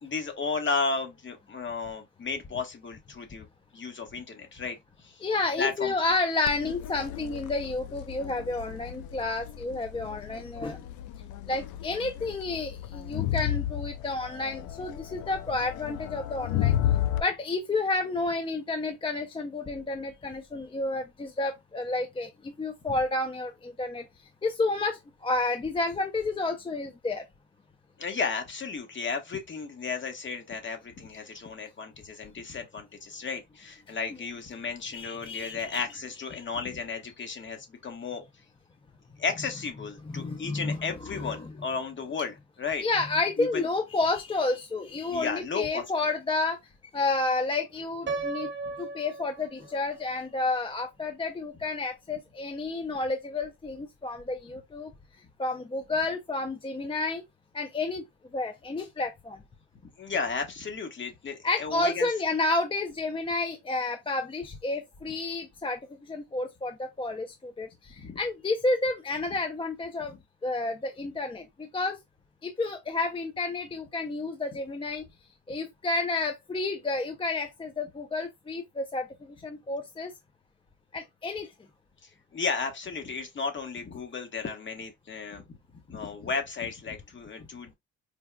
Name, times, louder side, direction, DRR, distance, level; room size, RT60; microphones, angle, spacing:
voice 1, 0.0-3.5 3.7-5.2 5.6-5.9 28.0-38.2 39.2-42.8 43.4-43.7 45.1-46.1 48.6-48.7 60.0-62.1 68.0-68.2 82.0-87.7, left 4 dB, 40° left, 1.2 m, -34 dB
voice 2, 5.2-10.8 11.5-16.7 17.2-24.1 24.4-27.2 34.9-35.8 40.1-40.8 41.1-41.5 42.8-46.6 46.9-48.5 48.8-54.9 55.4-57.2 57.5-58.0 58.3-59.4 61.4-70.1 70.4-72.0 72.4-75.0 75.5-79.1 79.4-80.1 80.9-81.5, left 3 dB, 20° left, 0.4 m, -30 dB
Crowd, 6.5-17.2, left 12 dB, 75° left, 0.5 m, -33 dB
Piano, 48.1-50.0, right 3 dB, 35° right, 0.8 m, -35 dB
4.5 x 2.3 x 2.2 m
cardioid pair, 90°, 30 cm